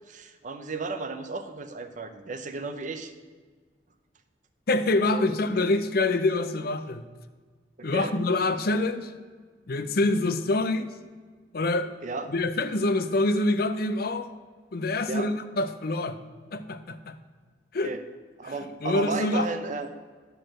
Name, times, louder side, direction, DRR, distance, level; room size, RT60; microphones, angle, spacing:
voice 1, 0.1-3.1 5.1-5.6 7.8-8.1 12.0-12.3 15.1-15.3 17.8-18.0 18.4-19.9, right 3 dB, 45° right, 9 dB, 0.7 m, -34 dB
voice 2, 4.7-7.0 7.8-9.1 9.7-10.9 11.5-11.9 12.3-14.3 14.7-16.2 16.5-17.2 17.7-17.9 18.5-19.5, left 2 dB, 60° left, 10 dB, 0.6 m, -26 dB
10.0 x 4.7 x 7.6 m, 1.5 s
head